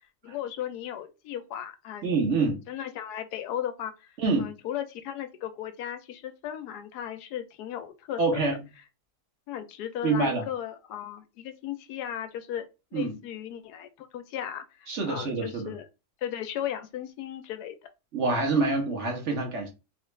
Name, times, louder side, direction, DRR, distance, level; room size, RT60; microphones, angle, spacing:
voice 1, 0.2-2.1 2.7-4.1 4.4-8.4 9.5-12.7 12.9-15.9 16.2-17.8, left 10 dB, 75° left, 1.1 m, -36 dB
voice 2, 2.0-2.6 4.2-4.5 8.2-8.6 10.0-10.5 12.9-13.2 14.9-15.7 18.1-19.7, right 3 dB, 50° right, 1.1 m, -26 dB
3.3 x 2.4 x 3.1 m
omnidirectional pair, 1.8 m